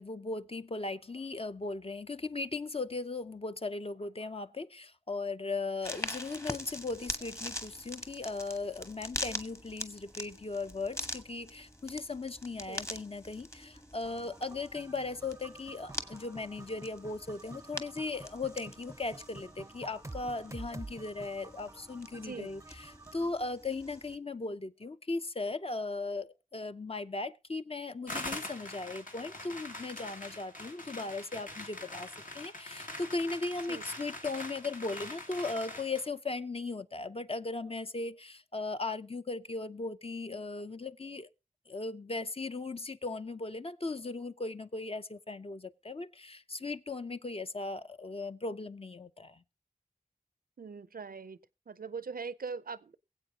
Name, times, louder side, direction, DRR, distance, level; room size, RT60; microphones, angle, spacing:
voice 1, 0.0-41.3 41.7-49.4, left 3 dB, 40° left, 0.6 m, -38 dB
sound 1, 5.8-24.2, left 1 dB, 20° left, 1.2 m, -44 dB
sound 2, 14.0-23.3, right 2 dB, 20° right, 0.5 m, -49 dB
sound 3, 28.1-36.1, left 2 dB, 65° left, 2.0 m, -43 dB
voice 2, 50.6-51.4 51.7-53.0, right 5 dB, 85° right, 0.5 m, -41 dB
22.5 x 8.0 x 2.8 m
wide cardioid pair, 45°, 15 cm